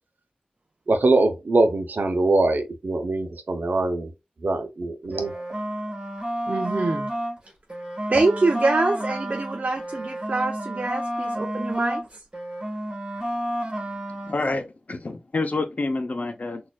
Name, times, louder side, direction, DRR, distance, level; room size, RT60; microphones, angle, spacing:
voice 1, 0.9-4.1 4.4-5.3, right 2 dB, 75° right, 0.8 m, -22 dB
sound 1, 5.0-7.4 7.7-12.1 12.3-14.4, equal, 25° right, 1.8 m, -30 dB
voice 2, 6.5-7.1 8.1-12.0, right 3 dB, 50° right, 0.5 m, -25 dB
voice 3, 14.2-16.6, left 3 dB, 50° left, 0.7 m, -28 dB
4.1 x 2.6 x 2.4 m
wide cardioid pair, 70°, 3 cm